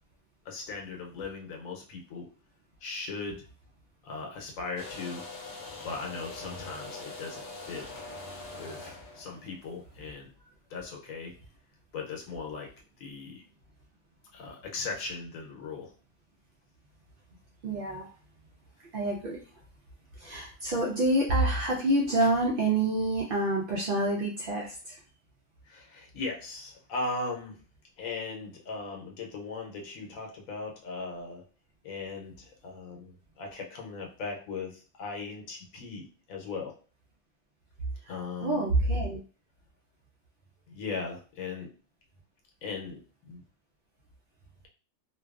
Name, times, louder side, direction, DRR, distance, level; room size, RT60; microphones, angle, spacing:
voice 1, 0.4-2.3 2.8-3.4 4.0-5.2 5.8-7.9 8.6-10.3 10.7-11.3 11.9-12.7 13.0-13.4 14.3-15.9 25.6-27.6 28.0-31.4 31.8-36.7 38.1-38.7 40.7-41.7 42.6-43.0 43.2-43.4, left 4 dB, 85° left, 0 dB, 1.0 m, -38 dB
sound 1, 4.8-10.2, left 2 dB, 65° left, 0.4 m, -43 dB
voice 2, 17.6-18.1 18.9-19.4 20.2-25.0 38.0-38.1 38.4-39.2, right 1 dB, 65° right, -2 dB, 0.5 m, -27 dB
2.5 x 2.2 x 2.3 m, 0.37 s
omnidirectional pair, 1.4 m